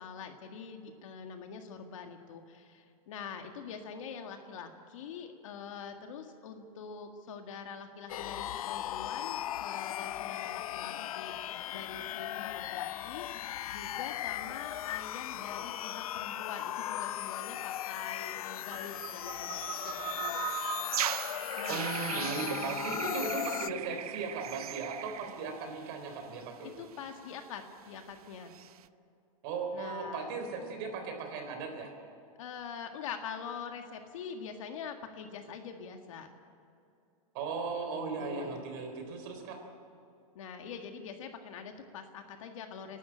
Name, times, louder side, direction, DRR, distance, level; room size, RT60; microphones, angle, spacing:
voice 1, 0.0-13.3 13.7-19.6 19.8-20.5 21.6-23.1 26.8-28.5 29.7-30.3 32.4-36.3 38.2-38.6 40.4-43.0, left 6 dB, 60° left, 5 dB, 1.8 m, -44 dB
sound 1, 8.1-23.7, left 13 dB, 75° left, 0.6 m, -37 dB
sound 2, 18.7-25.9 26.2-26.4 26.9-27.4 28.5-28.7, right 11 dB, 90° right, 0.8 m, -39 dB
voice 2, 21.7-26.7 29.4-31.9 37.3-39.6, right 4 dB, 40° right, 5 dB, 3.8 m, -37 dB
30.0 x 12.0 x 8.8 m, 2.6 s
supercardioid pair, 170°, 19 cm